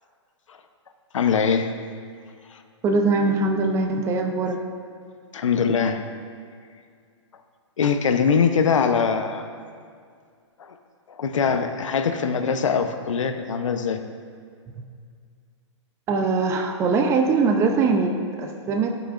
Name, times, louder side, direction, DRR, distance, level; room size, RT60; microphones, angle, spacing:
voice 1, 1.1-1.7 5.3-6.0 7.8-9.5 10.6-10.7 11.1-14.0, left 6 dB, 90° left, 7 dB, 0.8 m, -22 dB
voice 2, 2.8-4.6 16.1-19.0, right 3 dB, 15° right, 4 dB, 0.5 m, -22 dB
14.5 x 6.1 x 2.5 m, 2.1 s
hypercardioid pair, 145°, 16 cm